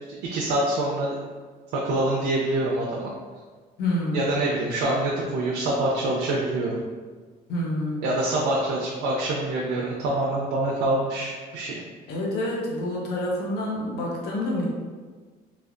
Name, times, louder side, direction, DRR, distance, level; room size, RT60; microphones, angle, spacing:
voice 1, 0.1-1.2 1.7-3.1 4.1-6.8 8.0-11.8, right 1 dB, 90° right, -4 dB, 0.5 m, -25 dB
voice 2, 3.8-4.4 7.5-8.1 12.1-14.7, left 1 dB, 75° left, -2 dB, 0.8 m, -27 dB
3.2 x 2.8 x 2.5 m, 1.5 s
cardioid pair, 110°, 17 cm